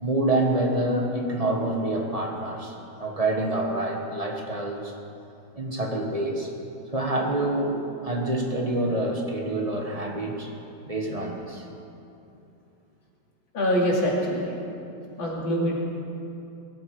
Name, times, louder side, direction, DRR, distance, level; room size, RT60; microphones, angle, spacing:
voice 1, 0.0-4.9 5.5-6.5 6.9-10.5 10.9-11.6, right 1 dB, 20° right, 1 dB, 1.3 m, -27 dB
voice 2, 13.5-14.5 15.2-15.8, equal, 80° left, -4 dB, 3.5 m, -24 dB
21.5 x 12.0 x 4.8 m, 2.8 s
omnidirectional pair, 2.1 m